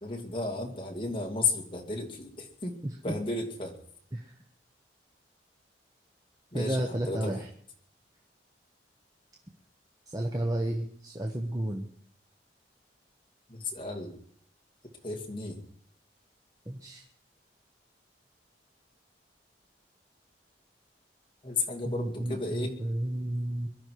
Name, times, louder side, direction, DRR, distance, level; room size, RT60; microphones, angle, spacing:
voice 1, 0.0-2.7 3.0-3.7 6.5-7.4 13.5-14.2 15.0-15.6 21.4-22.8, left 3 dB, 30° left, 1 dB, 2.3 m, -33 dB
voice 2, 6.5-7.5 10.1-11.9 16.7-17.0 21.8-23.7, right 1 dB, 20° right, 1 dB, 1.1 m, -32 dB
22.5 x 11.5 x 4.7 m, 0.64 s
head